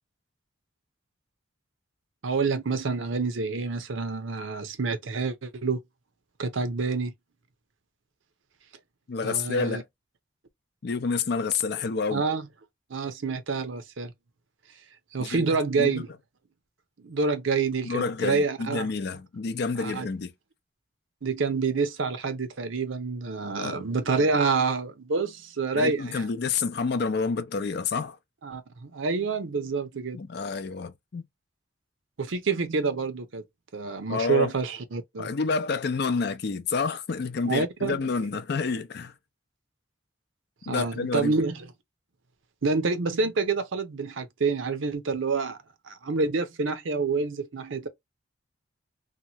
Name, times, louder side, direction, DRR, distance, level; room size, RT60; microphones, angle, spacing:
voice 1, 2.2-5.8 6.4-7.1 9.2-9.8 12.1-12.5 12.9-14.1 15.1-16.1 17.0-18.9 19.8-20.1 21.2-26.2 28.4-30.2 32.2-33.4 33.7-35.3 37.4-38.0 40.6-41.7 42.6-45.6 45.9-47.9, right 4 dB, 80° right, 0.6 m, -27 dB
voice 2, 9.1-9.8 10.8-12.2 15.2-16.0 17.8-20.3 23.6-23.8 25.7-28.2 30.1-31.2 34.1-34.5 35.2-39.1 40.7-41.3, left 4 dB, 55° left, 0.4 m, -29 dB
2.9 x 2.2 x 2.8 m
head